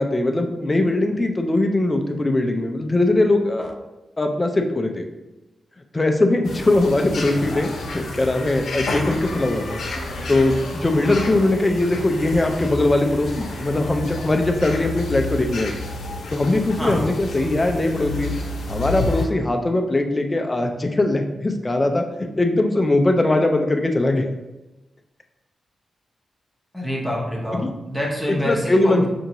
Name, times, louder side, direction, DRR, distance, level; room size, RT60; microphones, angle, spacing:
voice 1, 0.0-3.8 4.2-5.0 5.9-9.8 10.3-15.7 16.3-18.3 18.7-24.2 27.5-27.7 28.3-29.1, left 2 dB, 20° left, 4 dB, 0.4 m, -20 dB
sound 1, 6.4-19.3, left 2 dB, 75° left, 0.7 m, -30 dB
voice 2, 26.7-29.1, left 1 dB, ahead, -4 dB, 0.8 m, -26 dB
5.3 x 2.6 x 2.9 m, 1.0 s
wide cardioid pair, 155°, 0 cm